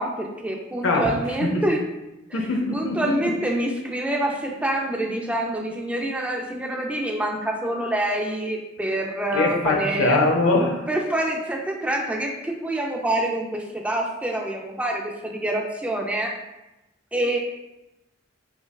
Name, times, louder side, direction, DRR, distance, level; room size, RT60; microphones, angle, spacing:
voice 1, 0.0-1.8 2.3-2.4 2.7-10.2 10.9-16.3 17.1-17.4, right 1 dB, 5° right, 0 dB, 0.4 m, -26 dB
voice 2, 2.3-3.3 9.3-10.9, left 2 dB, 75° left, 1 dB, 0.6 m, -22 dB
5.3 x 2.2 x 2.3 m, 0.96 s
head